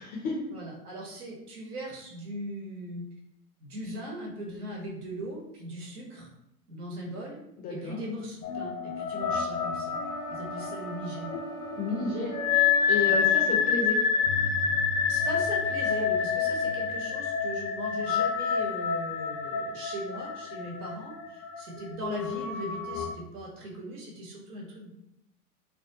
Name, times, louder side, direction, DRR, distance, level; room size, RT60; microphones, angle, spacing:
voice 1, 0.0-0.4 7.6-8.0 11.8-12.3 12.9-14.0, left 3 dB, 20° left, -2 dB, 0.4 m, -31 dB
voice 2, 0.5-3.1 3.6-6.3 6.7-7.4 7.7-10.0 10.3-11.3 13.0-13.2 15.1-24.9, right 1 dB, 80° right, -2 dB, 1.0 m, -39 dB
sound 1, 8.4-23.1, left 6 dB, 80° left, 0.5 m, -28 dB
sound 2, 9.9-13.8, right 7 dB, 60° right, 0.6 m, -43 dB
2.4 x 2.2 x 2.6 m, 0.82 s
hypercardioid pair, 95°, 44 cm